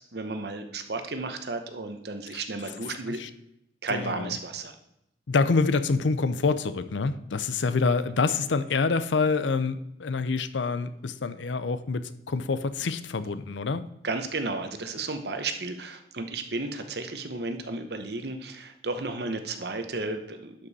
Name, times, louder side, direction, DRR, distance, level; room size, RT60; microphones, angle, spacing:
voice 1, 0.0-3.2 3.8-4.7 14.0-20.5, right 3 dB, 60° right, 7 dB, 0.9 m, -33 dB
voice 2, 2.8-3.3 3.9-4.3 5.3-13.8, left 4 dB, 80° left, 12 dB, 0.6 m, -27 dB
11.5 x 5.3 x 4.2 m, 0.81 s
head